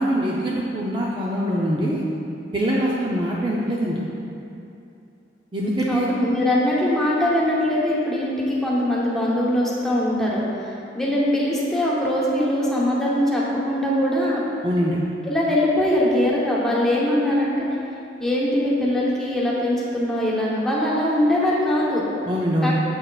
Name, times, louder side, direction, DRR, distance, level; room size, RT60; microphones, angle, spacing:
voice 1, 0.0-2.0 2.5-4.0 5.5-6.1 14.6-15.0 22.3-22.8, equal, 25° right, -5 dB, 0.5 m, -23 dB
voice 2, 5.9-14.4 15.2-17.7 18.2-22.0 22.6-22.7, left 1 dB, ahead, -6 dB, 0.9 m, -22 dB
7.6 x 6.2 x 2.3 m, 2.7 s
head